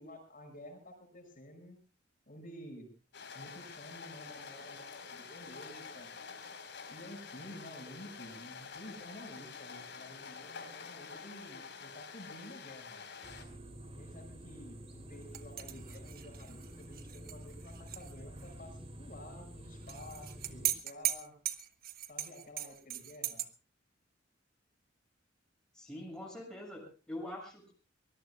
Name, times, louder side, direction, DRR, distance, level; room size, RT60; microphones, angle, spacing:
voice 1, 0.0-1.8 2.3-2.9 3.3-6.1 6.9-13.0 13.9-21.4 22.1-23.5, left 1 dB, 45° left, 2 dB, 6.0 m, -51 dB
sound 1, 3.1-13.4, left 5 dB, 65° left, 4.2 m, -48 dB
sound 2, 13.2-20.7, right 1 dB, 30° right, 3.2 m, -49 dB
sound 3, 15.3-18.1 18.4-18.5 19.9-23.5, right 11 dB, 50° right, 1.3 m, -38 dB
voice 2, 25.7-27.7, left 1 dB, 5° left, -1 dB, 6.5 m, -44 dB
24.0 x 20.5 x 2.3 m, 0.34 s
head